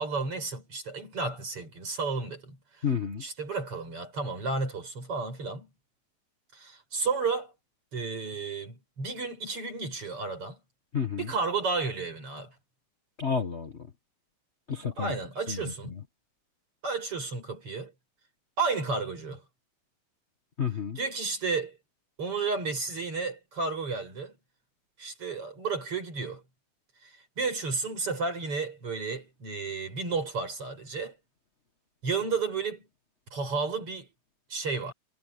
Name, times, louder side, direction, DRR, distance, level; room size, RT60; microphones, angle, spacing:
voice 1, 0.0-2.9 3.2-5.7 6.5-7.5 7.9-10.6 11.2-12.6 15.0-15.9 16.8-17.9 18.6-19.4 21.0-21.8 22.2-24.3 25.0-26.4 27.0-31.2 32.0-32.9 33.3-34.1 34.5-34.9, right 4 dB, 40° right, 7.1 m, -32 dB
voice 2, 2.8-3.2 10.9-11.3 13.2-13.7 14.7-15.1 15.5-15.7 20.6-21.0, left 6 dB, 65° left, 0.6 m, -30 dB
omnidirectional pair, 3.8 m